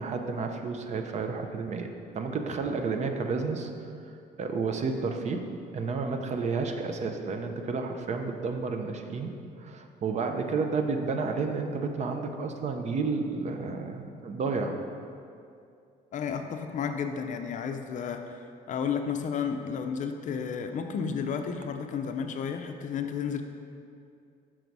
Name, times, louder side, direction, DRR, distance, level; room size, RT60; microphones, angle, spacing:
voice 1, 0.0-1.9 2.1-3.7 4.4-5.5 5.7-14.8, right 4 dB, 40° right, 5 dB, 0.5 m, -31 dB
voice 2, 16.1-23.4, left 6 dB, 50° left, 6 dB, 0.5 m, -32 dB
6.1 x 3.9 x 4.6 m, 2.4 s
cardioid pair, 110°, 17 cm